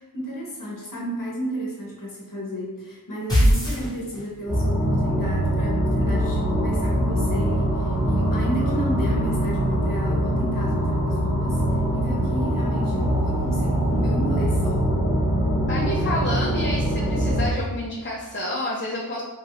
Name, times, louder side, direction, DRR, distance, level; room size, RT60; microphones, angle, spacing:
voice 1, 0.0-14.9, equal, 55° left, -4 dB, 1.0 m, -33 dB
sound 1, 3.3-4.6, equal, 10° left, 1.1 m, -20 dB
sound 2, 4.5-17.5, equal, 15° right, 1.1 m, -23 dB
voice 2, 15.7-19.2, left 1 dB, 30° left, -6 dB, 0.6 m, -29 dB
3.0 x 2.5 x 3.0 m, 1.1 s
wide cardioid pair, 45°, 39 cm